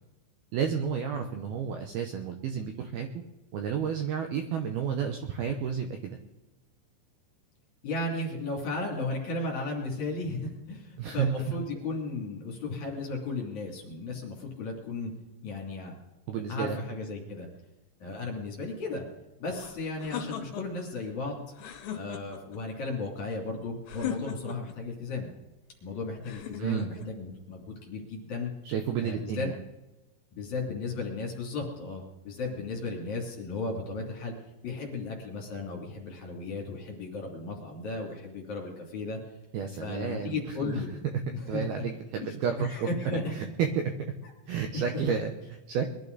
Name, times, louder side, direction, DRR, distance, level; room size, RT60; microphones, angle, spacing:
voice 1, 0.5-3.1 3.5-6.2 11.0-11.5 16.3-16.8 26.6-26.9 28.6-29.6 39.5-40.8 41.5-42.9 43.3-43.9 44.5-45.9, right 7 dB, 75° right, 5 dB, 2.3 m, -31 dB
voice 2, 7.8-15.1 15.4-15.9 16.5-17.5 18.0-19.0 19.4-21.4 21.9-25.3 25.8-28.5 29.0-29.5 30.3-34.3 34.6-39.2 39.8-40.9 41.3-41.8 42.2-43.3 44.7-45.1, left 3 dB, 45° left, -2 dB, 3.8 m, -35 dB
sound 1, 19.5-20.9 21.5-22.6 23.9-24.8 26.2-27.1, left 9 dB, 70° left, 3.3 m, -38 dB
22.0 x 12.5 x 4.0 m, 1.1 s
omnidirectional pair, 5.5 m